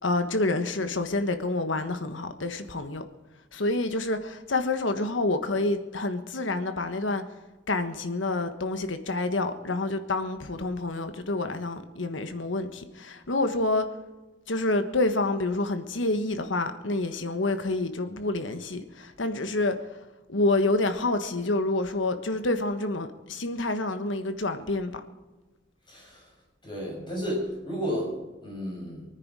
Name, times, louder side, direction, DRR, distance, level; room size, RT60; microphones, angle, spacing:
voice 1, 0.0-3.0 3.5-7.2 7.7-13.9 14.5-19.8 20.3-25.0, left 2 dB, 90° left, 1.4 m, -28 dB
voice 2, 25.9-26.2 26.6-28.1 28.4-29.1, equal, 25° left, 6.5 m, -32 dB
24.0 x 9.8 x 4.8 m
head